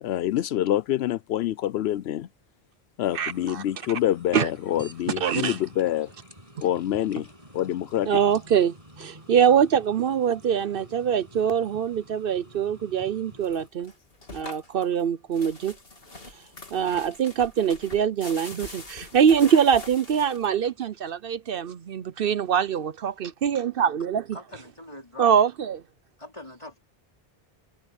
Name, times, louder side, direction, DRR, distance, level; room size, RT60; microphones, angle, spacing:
voice 1, 0.0-2.3 3.0-6.1 6.6-8.2, left 12 dB, 85° left, 0.8 m, -26 dB
sound 1, 3.0-13.7, right 1 dB, 35° right, 7.9 m, -50 dB
voice 2, 3.1-3.6 4.3-4.5 5.2-5.6 8.1-13.9 14.3-15.8 16.7-24.4 25.2-25.8, right 8 dB, 65° right, 0.8 m, -23 dB
sound 2, 13.4-20.7, left 2 dB, 65° left, 2.8 m, -43 dB
voice 3, 24.3-25.3 26.2-26.8, left 1 dB, 30° left, 4.3 m, -42 dB
omnidirectional pair, 1.0 m